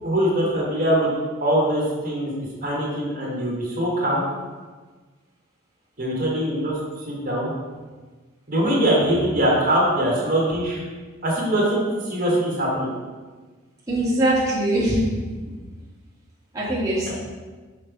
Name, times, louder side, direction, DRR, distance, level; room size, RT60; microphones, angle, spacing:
voice 1, 0.0-1.1 1.4-2.3 2.6-4.2 6.0-6.7 7.1-7.5 8.5-10.8 11.2-12.9 17.1-17.2, right 1 dB, 40° right, -5 dB, 1.5 m, -22 dB
voice 2, 13.9-15.3 16.5-17.1, right 1 dB, 15° right, -7 dB, 1.5 m, -22 dB
5.8 x 3.2 x 5.0 m, 1.4 s
head